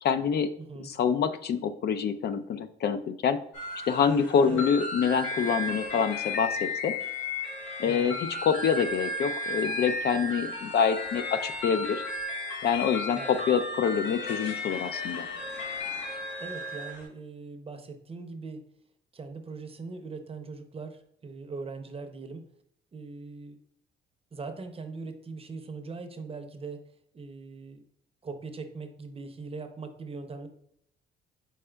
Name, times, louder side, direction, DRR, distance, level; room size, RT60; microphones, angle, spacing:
voice 1, 0.0-0.5 0.8-3.4 3.9-6.9 7.8-8.2 8.4-12.0 12.6-15.3, left 7 dB, 55° left, 11 dB, 0.4 m, -26 dB
voice 2, 0.6-0.9 4.5-4.7 7.8-8.2 13.1-13.3 16.4-18.6 19.1-22.5 22.9-23.6 24.3-27.8 28.2-30.5, right 4 dB, 30° right, 7 dB, 0.6 m, -41 dB
sound 1, 3.5-17.0, left 2 dB, 90° left, 1.2 m, -34 dB
4.8 x 4.2 x 2.2 m, 0.71 s
cardioid pair, 90°, 20 cm